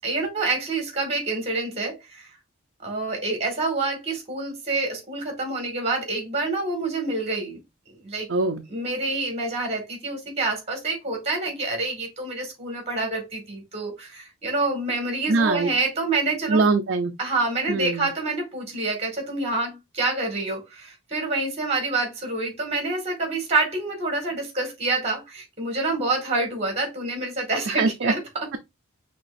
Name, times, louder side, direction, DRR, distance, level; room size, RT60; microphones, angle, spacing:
voice 1, 0.0-2.3 2.8-7.6 7.9-8.3 8.7-16.6 17.2-28.5, right 2 dB, 30° right, 2.0 m, -27 dB
voice 2, 8.3-8.6 15.3-15.7 16.5-17.1 17.7-18.1 27.7-28.1, right 3 dB, 60° right, 0.6 m, -22 dB
5.9 x 3.0 x 2.5 m
head